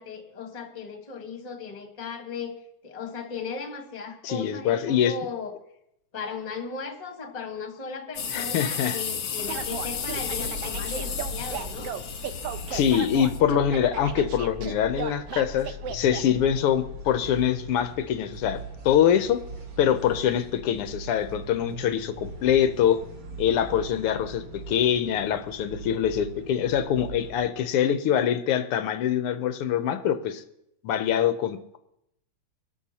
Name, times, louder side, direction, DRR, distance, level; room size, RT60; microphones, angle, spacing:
voice 1, 0.0-5.5 6.1-11.9, left 5 dB, 30° left, 3 dB, 0.7 m, -37 dB
voice 2, 4.2-5.1 8.3-9.0 12.7-19.4 19.8-23.0 23.4-30.4 30.8-31.8, left 9 dB, 80° left, 9 dB, 1.2 m, -24 dB
sound 1, 8.1-13.4, left 6 dB, 55° left, 1.2 m, -33 dB
sound 2, 9.4-27.5, equal, 50° right, 2.8 m, -40 dB
sound 3, 9.5-16.2, right 8 dB, 70° right, 1.5 m, -36 dB
25.0 x 13.0 x 2.9 m, 0.81 s
omnidirectional pair, 3.4 m